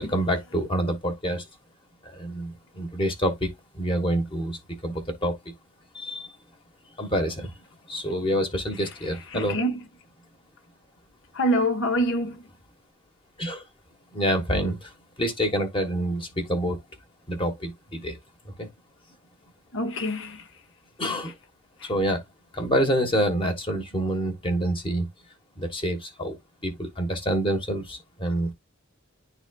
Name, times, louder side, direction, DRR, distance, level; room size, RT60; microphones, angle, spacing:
voice 1, 0.0-1.4 2.0-5.5 5.9-6.3 6.9-7.5 7.9-9.6 13.4-13.6 14.1-16.8 17.3-18.2 18.4-18.7 21.0-21.3 21.8-22.2 22.5-25.1 25.6-26.4 26.6-28.5, equal, 25° left, 1.2 m, -27 dB
voice 2, 9.3-9.7 11.3-12.4 19.7-20.4 21.8-21.9, equal, 65° left, 1.3 m, -25 dB
10.5 x 4.1 x 2.3 m
head